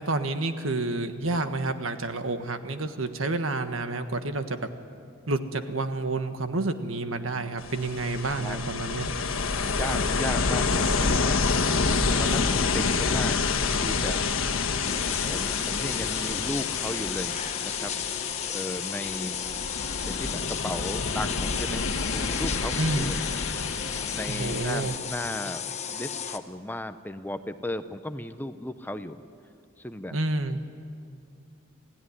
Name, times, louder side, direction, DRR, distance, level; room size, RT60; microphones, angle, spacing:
voice 1, 0.0-4.7 5.3-9.1 22.8-23.1 24.3-25.0 30.1-30.6, right 2 dB, 80° right, 8 dB, 1.5 m, -29 dB
Ocean, 7.6-25.0, left 4 dB, 85° left, 1.4 m, -28 dB
voice 2, 9.7-11.4 12.2-13.4 13.7-14.2 15.2-17.9 18.5-19.6 20.1-23.2 24.1-29.2 29.8-30.2, left 1 dB, 10° left, 10 dB, 0.7 m, -36 dB
sound 1, 14.8-26.4, left 7 dB, 35° left, 1.0 m, -34 dB
28.0 x 16.0 x 9.9 m, 2.4 s
head